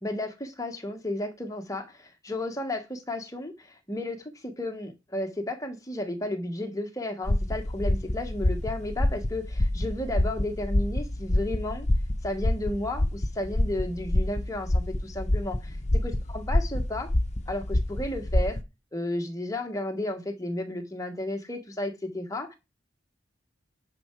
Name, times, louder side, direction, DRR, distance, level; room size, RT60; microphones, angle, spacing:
voice 1, 0.0-11.9 12.2-15.6 16.0-17.1 17.5-18.6 18.9-22.6, left 1 dB, 15° left, 1.6 m, -33 dB
sound 1, 7.3-18.6, left 1 dB, 35° left, 1.0 m, -27 dB
10.5 x 5.8 x 4.8 m
head